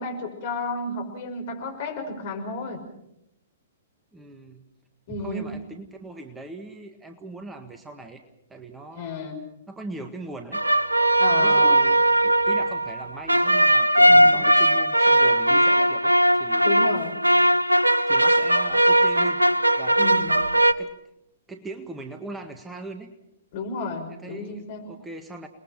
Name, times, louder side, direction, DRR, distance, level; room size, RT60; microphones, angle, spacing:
voice 1, 0.0-2.8 5.1-5.6 8.9-9.4 11.2-11.8 14.1-14.4 16.6-17.2 20.0-20.4 23.5-24.8, left 3 dB, 45° left, 4 dB, 5.7 m, -32 dB
voice 2, 4.1-4.7 5.1-8.2 8.5-9.3 9.7-10.6 11.4-16.7 18.1-19.4 19.8-20.3 20.8-20.9 21.5-23.1 24.1-25.5, right 2 dB, 10° right, 6 dB, 1.7 m, -40 dB
sound 1, 10.5-20.7, right 1 dB, 90° right, 0.9 m, -19 dB
29.0 x 21.0 x 5.9 m, 0.79 s
figure-of-eight pair, 115°, 0 cm